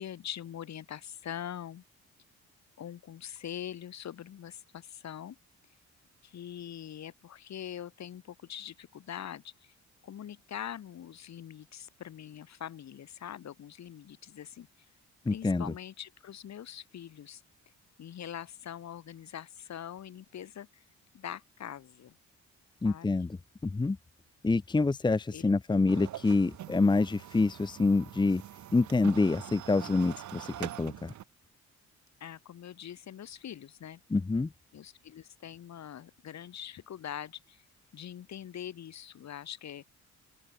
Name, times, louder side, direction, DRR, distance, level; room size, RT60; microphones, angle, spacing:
voice 1, 0.0-1.8 2.8-5.4 6.2-9.7 10.0-14.7 15.3-17.4 18.0-20.8 21.1-22.2 22.8-23.1 25.3-25.5 32.2-34.0 34.7-37.6 37.9-39.8, left 10 dB, 65° left, 4.2 m, -43 dB
voice 2, 15.2-15.7 22.8-24.0 24.4-28.4 28.7-31.1 34.1-34.5, left 3 dB, 15° left, 0.8 m, -27 dB
sound 1, 25.9-31.2, right 13 dB, 70° right, 1.5 m, -44 dB
open air
cardioid pair, 90°, 30 cm